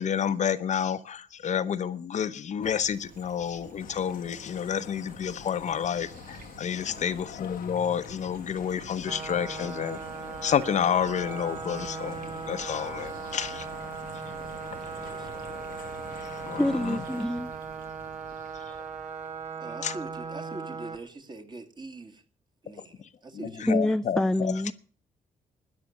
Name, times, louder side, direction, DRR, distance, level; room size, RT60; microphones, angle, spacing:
voice 1, 0.0-10.0 10.4-12.2 12.5-13.7 16.4-17.0 19.8-19.9 23.3-24.7, left 8 dB, 55° left, 0.9 m, -29 dB
sound 1, 2.6-20.8, right 5 dB, 80° right, 3.0 m, -50 dB
sound 2, 3.8-17.3, left 10 dB, 75° left, 1.0 m, -46 dB
sound 3, 9.1-21.0, right 5 dB, 55° right, 1.8 m, -38 dB
voice 2, 15.0-15.4 19.6-22.2 22.6-23.8, right 2 dB, 30° right, 2.4 m, -43 dB
voice 3, 16.6-17.5 23.7-24.7, left 1 dB, 5° left, 0.5 m, -26 dB
13.5 x 9.9 x 6.6 m
cardioid pair, 115°, 15 cm